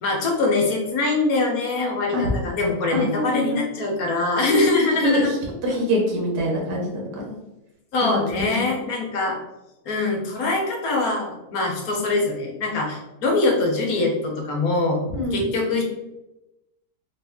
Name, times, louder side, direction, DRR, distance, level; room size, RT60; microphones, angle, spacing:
voice 1, 0.0-5.3 7.9-9.4 9.9-15.0 15.3-15.8, left 2 dB, 65° left, 0 dB, 1.2 m, -23 dB
voice 2, 2.9-3.6 5.0-5.4 5.6-7.3 8.0-8.2 8.6-8.7 15.1-15.4, equal, 85° right, -1 dB, 1.6 m, -24 dB
3.7 x 2.5 x 3.5 m, 0.94 s
omnidirectional pair, 1.7 m